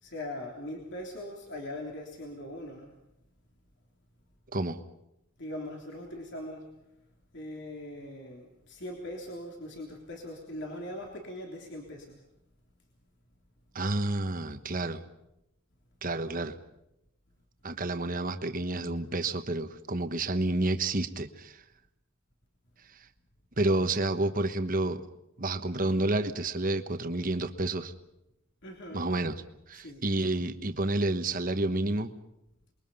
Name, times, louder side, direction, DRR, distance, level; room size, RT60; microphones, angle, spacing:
voice 1, 0.0-2.9 5.4-6.7 7.3-12.2 28.6-29.1 29.7-30.0, left 1 dB, 55° left, 0 dB, 3.4 m, -41 dB
voice 2, 13.7-15.0 16.0-16.5 17.6-21.6 23.6-25.0 25.4-27.9 28.9-29.4 29.7-32.1, right 2 dB, 40° right, 8 dB, 1.3 m, -29 dB
28.0 x 22.0 x 5.5 m, 0.87 s
head